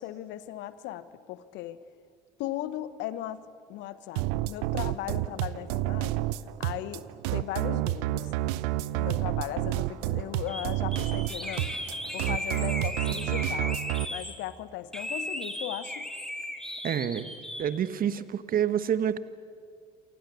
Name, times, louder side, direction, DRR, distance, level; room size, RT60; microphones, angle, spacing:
voice 1, 0.0-1.8 2.4-3.4 3.7-6.3 6.6-8.3 8.9-11.7 12.1-13.8 14.1-16.1, left 13 dB, 65° left, 14 dB, 1.3 m, -37 dB
sound 1, 4.2-14.0, right 16 dB, 70° right, 0.8 m, -30 dB
sound 2, 10.5-10.7 10.9-14.3 14.9-17.6, left 1 dB, 5° left, 4.7 m, -36 dB
voice 2, 16.8-17.3 17.6-19.2, right 9 dB, 45° right, 14 dB, 1.3 m, -28 dB
28.5 x 25.5 x 7.0 m, 2.1 s
hypercardioid pair, 60°, 20 cm